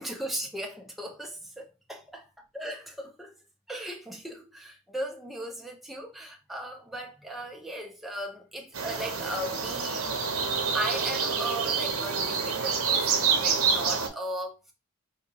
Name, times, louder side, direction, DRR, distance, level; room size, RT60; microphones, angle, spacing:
voice 1, 0.0-2.2 2.5-3.3 3.7-10.1 10.7-14.7, right 1 dB, ahead, 0.6 m, -37 dB
sound 1, 8.7-14.1, right 5 dB, 70° right, 0.8 m, -27 dB
3.9 x 2.8 x 2.8 m
head